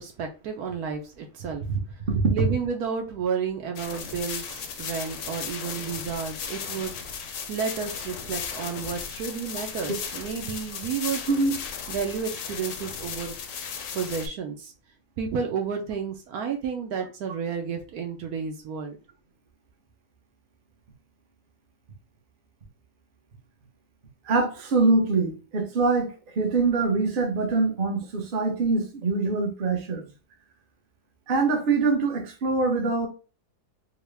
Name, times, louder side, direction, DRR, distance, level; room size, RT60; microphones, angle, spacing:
voice 1, 0.0-2.0 2.3-6.9 7.5-11.2 11.9-13.4 13.9-14.7 15.2-19.0, right 6 dB, 70° right, 1.0 m, -31 dB
sound 1, 3.8-14.3, left 6 dB, 65° left, 0.7 m, -36 dB
voice 2, 24.2-30.0 31.3-33.1, right 3 dB, 45° right, 0.8 m, -24 dB
3.8 x 2.1 x 3.3 m
omnidirectional pair, 1.8 m